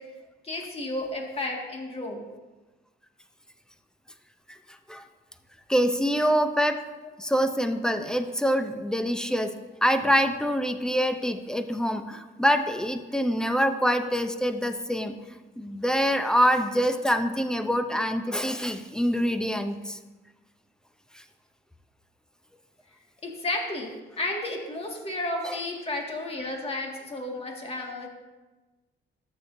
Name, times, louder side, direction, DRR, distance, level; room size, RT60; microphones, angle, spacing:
voice 1, 0.4-2.2 7.0-7.1 23.2-23.9 24.2-28.1, left 2 dB, 30° left, 0 dB, 1.9 m, -32 dB
voice 2, 5.7-6.8 7.2-9.5 9.8-15.2 15.6-20.0 25.4-25.6, equal, 5° left, 8 dB, 0.6 m, -25 dB
14.0 x 6.3 x 2.6 m, 1.2 s
cardioid pair, 90°, 20 cm